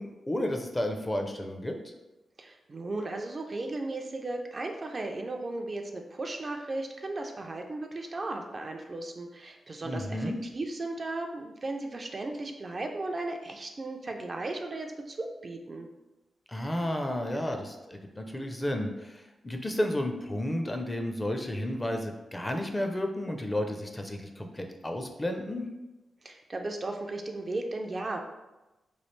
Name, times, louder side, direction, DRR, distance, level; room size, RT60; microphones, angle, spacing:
voice 1, 0.0-1.7 9.8-10.4 16.5-25.7, left 1 dB, 20° left, 4 dB, 0.4 m, -32 dB
voice 2, 2.4-15.9 26.2-28.2, right 2 dB, 45° right, 3 dB, 0.4 m, -36 dB
3.1 x 2.4 x 3.1 m, 1.0 s
cardioid pair, 60°, 0 cm